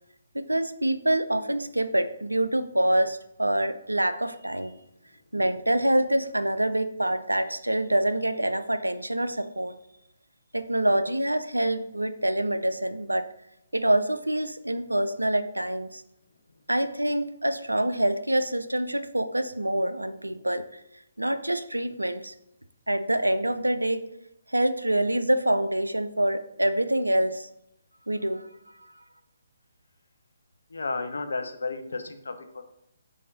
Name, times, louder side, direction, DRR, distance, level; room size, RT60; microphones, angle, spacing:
voice 1, 0.3-4.7 5.3-9.8 10.5-13.3 13.7-16.0 16.7-20.8 21.2-22.3 22.9-24.1 24.5-27.5 28.1-28.5 28.8-28.9, right 1 dB, 80° right, 11 dB, 0.3 m, -26 dB
voice 2, 30.7-32.6, left 3 dB, 60° left, 7 dB, 0.5 m, -33 dB
3.7 x 3.5 x 3.8 m, 0.82 s
figure-of-eight pair, 135°, 0 cm